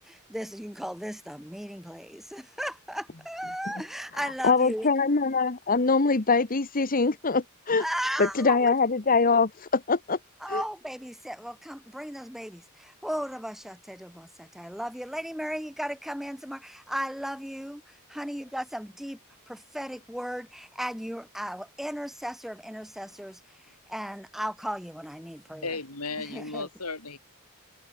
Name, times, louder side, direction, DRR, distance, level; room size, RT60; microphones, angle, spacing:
voice 1, 0.0-4.9 7.8-8.7 10.4-19.2 19.5-23.4 23.9-25.7 26.2-26.7, equal, ahead, 1.3 m, -36 dB
voice 2, 4.2-7.8 8.2-10.2 10.5-10.6, left 4 dB, 40° left, 1.2 m, -23 dB
voice 3, 25.6-27.2, left 3 dB, 85° left, 6.9 m, -35 dB
head